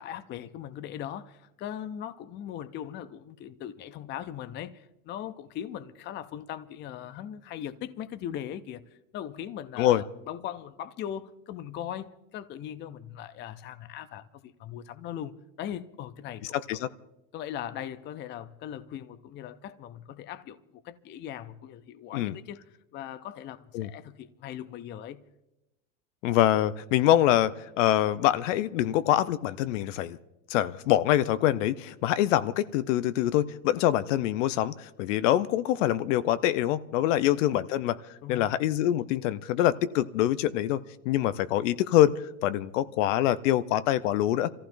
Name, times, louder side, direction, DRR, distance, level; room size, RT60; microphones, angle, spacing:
voice 1, 0.0-8.8 9.1-16.5 17.3-20.6 20.8-22.6 22.9-25.2 38.2-38.5, left 10 dB, 30° left, 0.5 m, -39 dB
voice 2, 16.5-16.9 22.1-22.4 23.7-23.9 26.2-30.2 30.5-38.0 38.3-40.8 41.0-44.5, left 13 dB, 70° left, 0.7 m, -25 dB
29.5 x 15.0 x 2.6 m
supercardioid pair, 125°, 39 cm